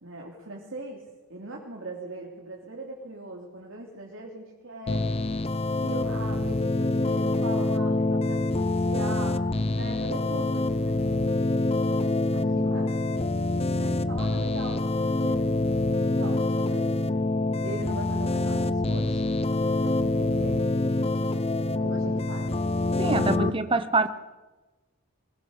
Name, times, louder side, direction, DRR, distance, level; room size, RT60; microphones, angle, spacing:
voice 1, 0.0-1.0 1.3-5.1 5.8-11.3 12.3-13.2 13.7-15.5 16.0-17.0 17.6-19.2 19.8-20.6 21.8-22.5 23.4-23.8, right 2 dB, 65° right, 3.4 m, -40 dB
sound 1, 4.9-23.5, left 2 dB, 30° left, 0.8 m, -26 dB
voice 2, 23.0-24.1, right 3 dB, 25° right, 1.0 m, -24 dB
23.0 x 21.0 x 6.6 m
head